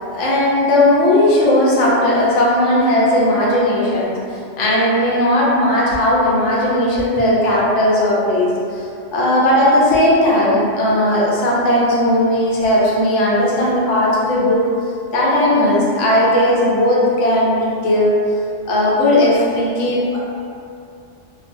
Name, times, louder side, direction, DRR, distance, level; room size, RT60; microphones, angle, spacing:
voice 1, 0.1-4.2 4.6-14.7 15.1-18.1 18.6-20.2, left 1 dB, 85° left, -6 dB, 0.9 m, -16 dB
2.5 x 2.1 x 2.5 m, 2.5 s
omnidirectional pair, 1.2 m